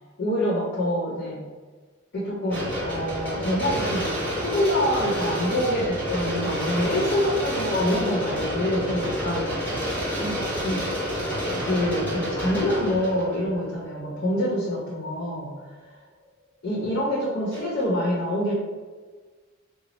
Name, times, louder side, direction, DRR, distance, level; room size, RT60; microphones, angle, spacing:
voice 1, 0.2-1.4 2.1-4.0 4.3-9.7 10.2-10.8 11.5-15.5 16.6-18.5, left 1 dB, 55° left, -6 dB, 0.8 m, -26 dB
sound 1, 2.5-14.6 15.2-15.3 17.5-17.8, equal, 10° left, 0.9 m, -29 dB
3.1 x 2.0 x 3.9 m, 1.4 s
head